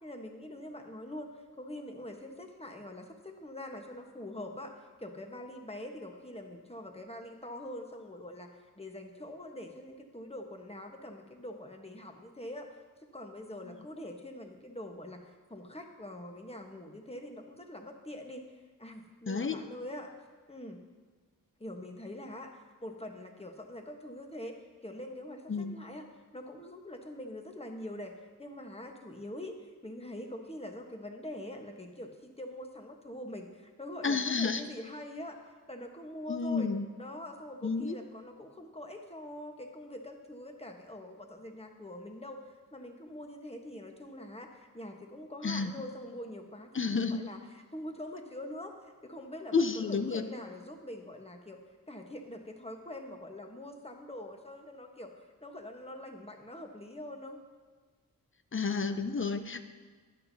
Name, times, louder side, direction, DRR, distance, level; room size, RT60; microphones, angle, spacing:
voice 1, 0.0-1.3 1.6-4.7 5.0-12.8 13.1-18.4 18.8-20.1 20.5-20.8 21.6-26.1 26.3-35.4 35.7-36.7 37.0-48.7 49.0-51.6 51.9-57.4, left 1 dB, 15° left, 3 dB, 1.2 m, -44 dB
voice 2, 19.3-19.6 25.5-25.7 34.0-34.7 36.3-36.9 37.6-38.0 45.4-45.7 46.7-47.2 49.5-50.3 58.5-59.6, left 4 dB, 35° left, 9 dB, 0.7 m, -30 dB
12.0 x 9.7 x 2.8 m, 1.5 s
cardioid pair, 50°, 34 cm